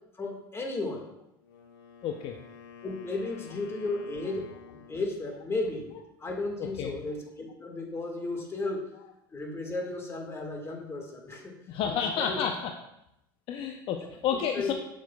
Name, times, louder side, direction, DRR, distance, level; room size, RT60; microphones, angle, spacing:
voice 1, 0.2-1.0 2.8-5.9 6.2-8.9 9.3-12.4 14.3-14.7, left 2 dB, 25° left, 1 dB, 1.8 m, -34 dB
Wind instrument woodwind instrument, 1.3-5.2, left 7 dB, 80° left, 1.6 m, -50 dB
voice 2, 2.0-2.4 6.6-6.9 11.7-12.7 13.5-14.7, left 8 dB, 50° left, 4 dB, 0.6 m, -30 dB
8.2 x 6.2 x 2.4 m, 0.84 s
hypercardioid pair, 85°, 11 cm